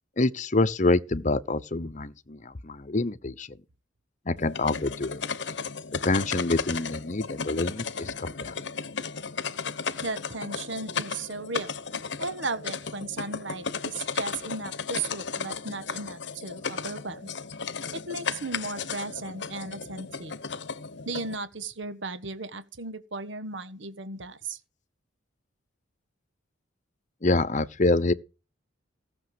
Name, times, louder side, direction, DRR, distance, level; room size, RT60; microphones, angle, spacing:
voice 1, 0.2-3.6 4.3-5.2 6.0-8.5 27.2-28.1, left 2 dB, 40° left, 0.9 m, -26 dB
sound 1, 4.4-21.4, left 5 dB, 60° left, 1.0 m, -35 dB
voice 2, 10.0-11.7 12.2-17.3 17.9-20.3 21.0-24.6, right 3 dB, 65° right, 1.4 m, -35 dB
17.5 x 7.0 x 7.8 m
head